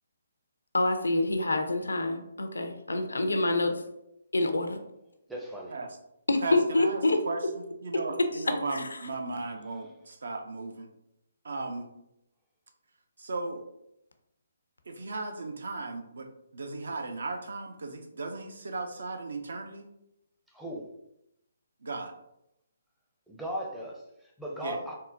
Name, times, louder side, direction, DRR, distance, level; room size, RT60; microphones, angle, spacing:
voice 1, 0.7-3.8 4.3-4.8 6.3-7.2 8.7-8.9, left 2 dB, 75° left, 6 dB, 0.4 m, -26 dB
voice 2, 5.3-5.7 20.5-20.9 23.3-24.9, equal, 5° right, -3 dB, 0.5 m, -37 dB
voice 3, 6.4-10.9 11.4-11.9 13.2-13.6 14.9-19.9 21.8-22.1 24.6-24.8, right 3 dB, 65° right, 4 dB, 0.4 m, -36 dB
3.6 x 2.1 x 2.5 m, 0.82 s
figure-of-eight pair, 140°, 0 cm